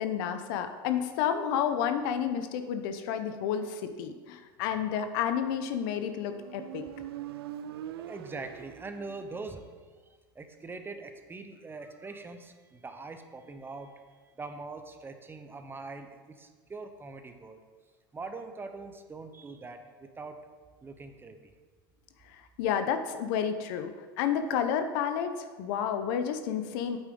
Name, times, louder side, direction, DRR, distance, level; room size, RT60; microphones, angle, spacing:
voice 1, 0.0-6.8 22.6-23.9 24.2-27.0, left 8 dB, 65° left, 8 dB, 0.8 m, -30 dB
Motorcycle, 5.9-9.5, right 11 dB, 85° right, 0.4 m, -43 dB
voice 2, 8.1-9.7 10.0-17.6 18.1-20.4 20.8-21.5, right 3 dB, 15° right, 7 dB, 0.8 m, -43 dB
8.3 x 8.1 x 3.8 m, 1.5 s
hypercardioid pair, 100°, 13 cm